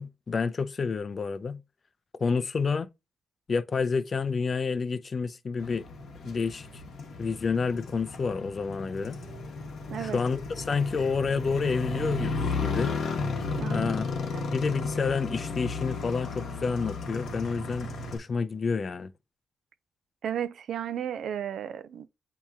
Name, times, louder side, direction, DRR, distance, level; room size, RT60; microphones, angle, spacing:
voice 1, 0.0-1.6 2.2-2.9 3.5-5.8 6.2-6.8 7.2-9.2 10.0-12.9 13.7-19.1, left 5 dB, 45° left, 0.5 m, -29 dB
Motorcycle, 5.6-18.2, left 3 dB, 75° left, 0.9 m, -34 dB
voice 2, 9.9-10.2 13.6-13.9 14.3-14.4 20.2-22.1, right 9 dB, 80° right, 0.5 m, -34 dB
7.9 x 2.9 x 2.3 m
cardioid pair, 75°, 0 cm